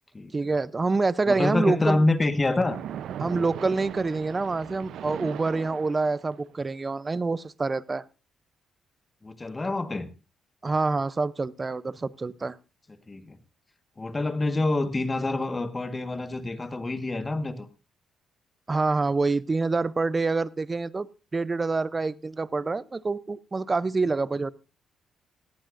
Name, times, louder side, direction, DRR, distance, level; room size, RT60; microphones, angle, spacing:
voice 1, 0.3-2.0 3.2-8.0 10.6-12.6 18.7-21.1 21.3-24.5, right 3 dB, 25° right, 18 dB, 0.6 m, -26 dB
voice 2, 1.2-2.8 9.2-10.1 13.1-13.4 14.0-17.7, left 2 dB, 25° left, 10 dB, 1.4 m, -26 dB
Splash splatter, 2.5-6.5, right 10 dB, 75° right, 0.6 m, -38 dB
18.5 x 15.0 x 2.6 m, 0.30 s
cardioid pair, 90°, 0 cm